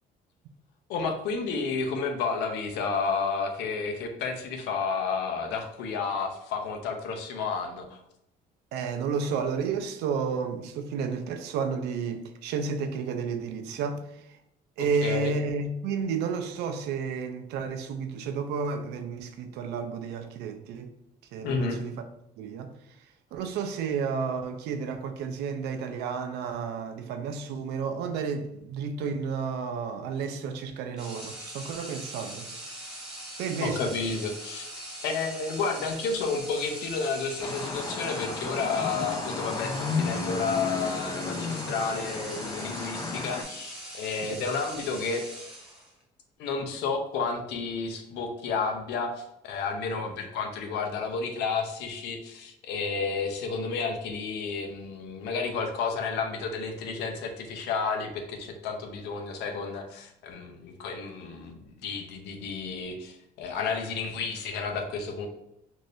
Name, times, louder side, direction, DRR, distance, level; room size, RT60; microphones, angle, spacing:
voice 1, 0.9-8.0 15.0-15.3 21.4-21.8 33.6-34.7 35.0-45.3 46.4-65.3, left 4 dB, 85° left, 0.6 m, -31 dB
voice 2, 8.7-14.0 14.8-20.9 21.3-21.9 22.4-22.7 23.3-32.5 33.4-33.9 44.2-44.3, right 5 dB, 80° right, 0.4 m, -31 dB
sound 1, 31.0-46.0, right 1 dB, 5° right, 1.0 m, -41 dB
sound 2, 37.4-43.4, left 4 dB, 20° left, 0.4 m, -33 dB
3.1 x 2.6 x 2.6 m
cardioid pair, 110°, 17 cm